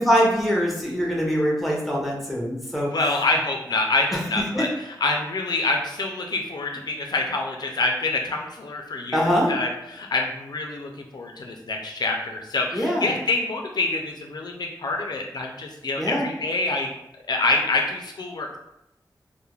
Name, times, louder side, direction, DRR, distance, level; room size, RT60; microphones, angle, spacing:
voice 1, 0.0-2.9 4.5-4.7 9.1-9.5 12.7-13.1 16.0-16.3, equal, ahead, -3 dB, 0.7 m, -23 dB
voice 2, 2.8-16.9 17.3-18.6, left 2 dB, 65° left, 2 dB, 0.3 m, -26 dB
2.3 x 2.0 x 3.0 m, 0.86 s
wide cardioid pair, 75°, 8 cm